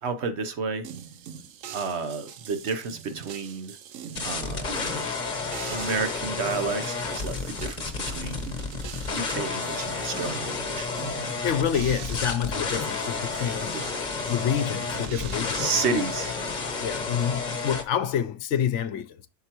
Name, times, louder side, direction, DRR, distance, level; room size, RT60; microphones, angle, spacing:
voice 1, 0.0-0.9 1.7-3.8 4.2-4.8 5.7-8.5 9.1-10.9 13.7-13.9 15.5-16.4, right 4 dB, 60° right, 1.2 m, -31 dB
sound 1, 0.8-16.7, right 8 dB, 85° right, 1.1 m, -43 dB
sound 2, 4.2-17.8, left 4 dB, 35° left, 1.2 m, -31 dB
voice 2, 11.4-13.8 14.3-15.7 16.8-19.3, left 9 dB, 70° left, 0.9 m, -28 dB
7.8 x 6.0 x 3.0 m
omnidirectional pair, 1.3 m